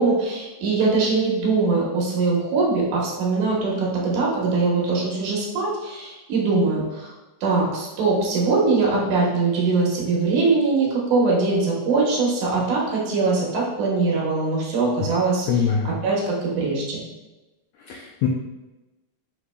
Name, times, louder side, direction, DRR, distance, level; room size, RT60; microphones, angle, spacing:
voice 1, 0.0-7.1 7.4-17.0, right 3 dB, 80° right, -4 dB, 2.6 m, -22 dB
voice 2, 15.5-15.9 17.9-18.3, left 7 dB, 90° left, -1 dB, 1.4 m, -22 dB
6.6 x 2.9 x 2.2 m, 1.1 s
omnidirectional pair, 3.4 m